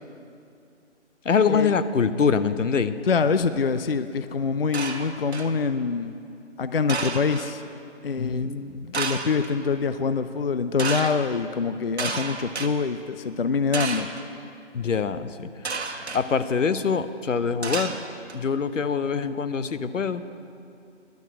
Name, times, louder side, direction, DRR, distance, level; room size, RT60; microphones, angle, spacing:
voice 1, 1.2-3.0 8.2-8.9 14.7-15.5 16.1-18.0 18.3-20.2, left 5 dB, 90° left, 12 dB, 0.8 m, -24 dB
voice 2, 3.1-6.2 6.6-7.6 8.0-8.5 8.9-14.1, left 5 dB, 55° left, 11 dB, 0.4 m, -25 dB
sound 1, 4.7-5.6 6.9-7.5 8.9-9.5 10.8-11.2 12.0-12.7 13.7-14.2 15.6-16.2 17.6-18.3, right 4 dB, 60° right, 1.2 m, -31 dB
10.5 x 9.2 x 8.7 m, 2.5 s
figure-of-eight pair, 170°, 36 cm